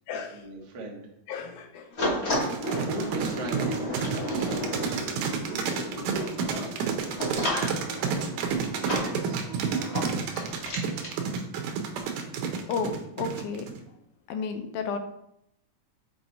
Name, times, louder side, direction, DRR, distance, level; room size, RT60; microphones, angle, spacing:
voice 1, 0.1-1.0 2.7-4.2 4.5-6.0 6.5-6.7 8.1-9.4, right 2 dB, 55° right, -1 dB, 1.1 m, -40 dB
voice 2, 1.3-1.9 12.7-13.7 14.3-15.0, left 5 dB, 80° left, 7 dB, 2.1 m, -32 dB
sound 1, 2.0-11.2, equal, 45° left, 0.8 m, -33 dB
sound 2, 2.3-13.8, right 6 dB, 90° right, 2.3 m, -30 dB
5.9 x 4.7 x 4.1 m, 0.77 s
omnidirectional pair, 3.6 m